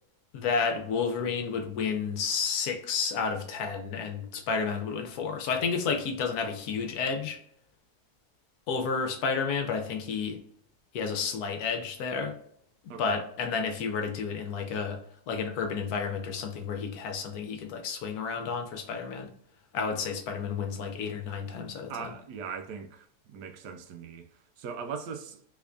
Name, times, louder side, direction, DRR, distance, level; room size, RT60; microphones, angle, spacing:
voice 1, 0.3-7.4 8.7-10.4 10.9-12.3 13.0-15.0 15.3-19.3 19.7-22.1, left 5 dB, 75° left, 1.2 m, -31 dB
voice 2, 21.5-24.3 24.6-25.4, right 6 dB, 90° right, 1.2 m, -40 dB
3.4 x 3.3 x 2.5 m
omnidirectional pair, 1.7 m